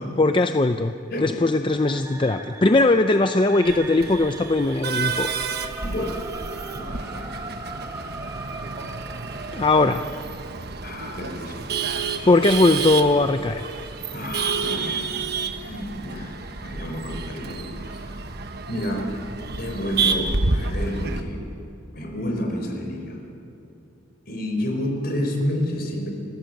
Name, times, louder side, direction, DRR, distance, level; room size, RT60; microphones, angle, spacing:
voice 1, 0.2-0.9 1.2-5.3 9.5-10.0 12.2-13.7, left 2 dB, 25° left, 8 dB, 0.5 m, -19 dB
sound 1, 1.7-9.8, right 2 dB, 15° right, 0.9 m, -39 dB
Male speech man speaking / Laughter / Chatter, 3.7-21.2, right 4 dB, 55° right, 1.2 m, -30 dB
voice 2, 5.8-6.2 6.7-7.3 10.8-11.6 14.1-15.1 15.7-18.2 18.7-19.1 19.6-21.4 21.9-23.2 24.3-26.1, equal, 50° left, 2 dB, 4.3 m, -30 dB
29.5 x 15.5 x 7.8 m, 2.7 s
head